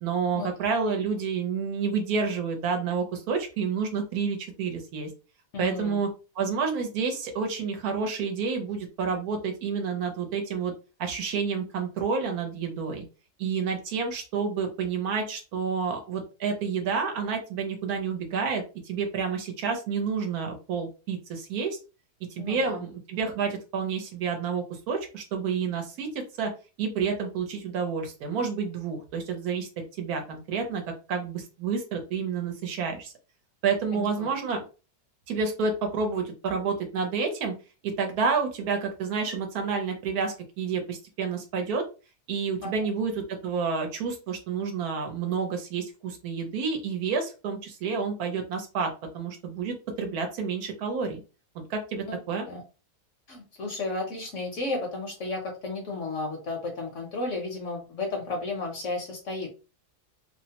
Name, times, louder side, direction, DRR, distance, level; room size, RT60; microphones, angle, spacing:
voice 1, 0.0-5.1 5.6-6.1 6.3-10.7 11.0-13.0 13.4-21.8 22.3-26.5 26.8-29.7 30.0-30.8 31.1-33.1 33.6-34.6 35.3-37.5 37.8-41.8 42.3-51.2 51.5-52.5, right 5 dB, 70° right, 4 dB, 1.1 m, -29 dB
voice 2, 5.5-6.0 22.4-22.8 33.9-34.3 42.6-42.7 52.0-52.2 52.5-52.6 53.3-59.7, left 2 dB, 60° left, 1 dB, 0.9 m, -33 dB
2.8 x 2.0 x 2.8 m, 0.32 s
omnidirectional pair, 1.8 m